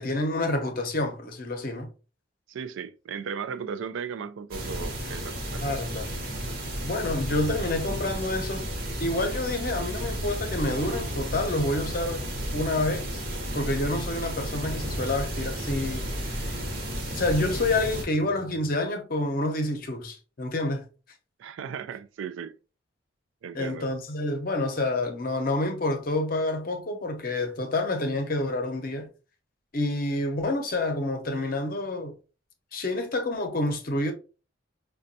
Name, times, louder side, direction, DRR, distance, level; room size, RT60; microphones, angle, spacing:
voice 1, 0.0-1.9 5.6-6.1 6.8-8.7 9.0-12.2 12.5-13.2 13.5-16.6 17.1-20.8 23.5-29.1 29.7-32.1 32.7-34.1, left 2 dB, 50° left, 0.6 m, -28 dB
voice 2, 2.5-5.8 21.4-22.6 23.4-23.9, right 6 dB, 80° right, 0.3 m, -36 dB
sound 1, 4.5-18.1, equal, 50° right, 0.9 m, -33 dB
sound 2, 10.1-18.7, equal, 15° right, 0.5 m, -45 dB
5.0 x 2.2 x 2.6 m
head